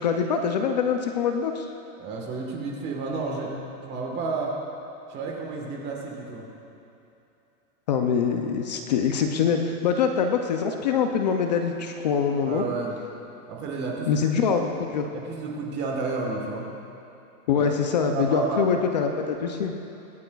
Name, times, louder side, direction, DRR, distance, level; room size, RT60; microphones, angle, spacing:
voice 1, 0.0-1.7 7.9-12.7 14.1-15.1 17.5-19.7, left 6 dB, 35° left, 5 dB, 0.4 m, -24 dB
voice 2, 2.0-4.5 5.1-6.4 12.5-13.0 13.5-14.2 14.5-14.6 15.1-16.7 17.5-17.7 18.1-18.6, right 4 dB, 25° right, -1 dB, 1.3 m, -31 dB
23.5 x 8.5 x 2.3 m, 2.8 s
supercardioid pair, 155°, 44 cm